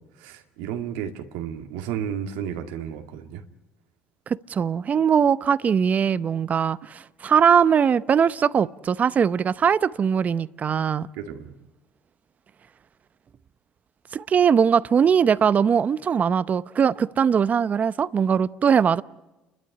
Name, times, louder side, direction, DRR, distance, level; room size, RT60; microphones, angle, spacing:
voice 1, 0.2-3.4 11.2-11.5, right 9 dB, 90° right, 2.2 m, -32 dB
voice 2, 4.3-11.1 14.1-19.0, right 7 dB, 40° right, 0.8 m, -21 dB
29.5 x 12.5 x 10.0 m
supercardioid pair, 90°, 4 cm